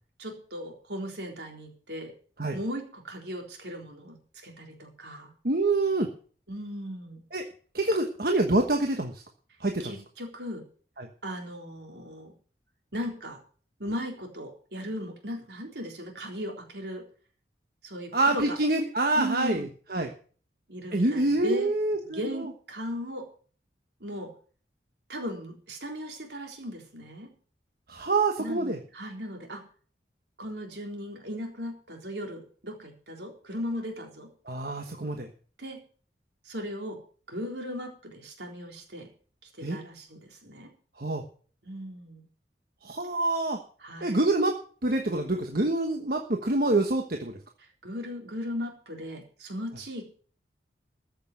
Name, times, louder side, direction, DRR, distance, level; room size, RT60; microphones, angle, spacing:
voice 1, 0.2-2.1 2.5-5.3 6.5-7.2 9.8-10.6 11.2-12.3 12.9-13.4 13.8-17.0 17.8-18.6 19.1-19.7 20.7-21.7 22.0-23.3 24.0-24.3 25.1-27.3 28.4-29.6 30.4-34.3 35.6-35.8 36.5-37.0 37.3-39.1 39.6-40.7 41.6-42.2 43.8-44.2 47.8-50.1, equal, 75° right, 2 dB, 3.8 m, -37 dB
voice 2, 5.4-6.1 7.3-7.4 7.7-9.2 9.6-9.9 11.0-11.1 18.1-20.1 20.9-22.5 27.9-28.8 34.5-35.3 39.6-39.8 41.0-41.2 42.8-43.6 44.0-44.5 44.8-47.3, right 2 dB, 55° right, 3 dB, 1.3 m, -26 dB
14.5 x 6.7 x 7.7 m, 0.43 s
head